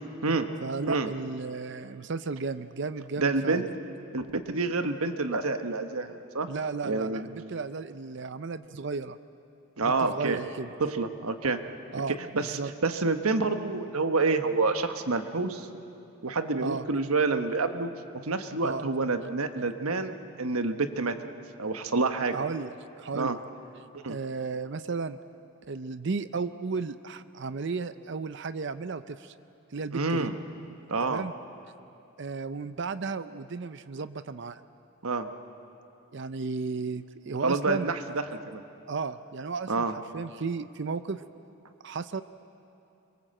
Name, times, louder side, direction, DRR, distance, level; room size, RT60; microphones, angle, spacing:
voice 1, 0.6-3.7 6.5-9.2 9.8-10.7 11.9-12.7 16.6-16.9 18.6-18.9 22.3-23.4 24.1-25.2 25.7-29.3 29.7-30.3 31.0-31.3 32.2-34.6 36.1-37.9 38.9-41.2 41.8-42.2, right 4 dB, 55° right, 12 dB, 0.5 m, -34 dB
voice 2, 3.2-3.6 4.1-6.5 6.8-7.2 9.8-10.4 10.8-11.6 12.1-15.7 16.2-17.9 18.2-21.2 21.6-22.3 23.1-23.4 24.0-24.2 29.9-30.3 30.9-31.3 35.0-35.3 37.4-38.6 39.7-39.9, right 3 dB, 90° right, 8 dB, 1.3 m, -28 dB
26.0 x 23.0 x 7.7 m, 2.8 s
head